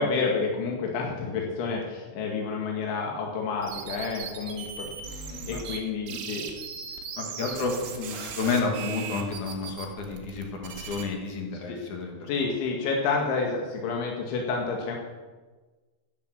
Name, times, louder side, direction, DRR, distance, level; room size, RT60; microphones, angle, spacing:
voice 1, 0.0-5.2 5.5-6.5 7.4-7.5 11.7-11.8 12.3-15.0, left 4 dB, 85° left, -1 dB, 4.3 m, -29 dB
sound 1, 3.6-5.8 6.1-11.1, right 6 dB, 85° right, 4.2 m, -38 dB
voice 2, 5.3-5.6 6.1-6.4 7.2-12.3, left 4 dB, 50° left, 2 dB, 2.9 m, -31 dB
14.5 x 11.5 x 6.5 m, 1.3 s
omnidirectional pair, 5.2 m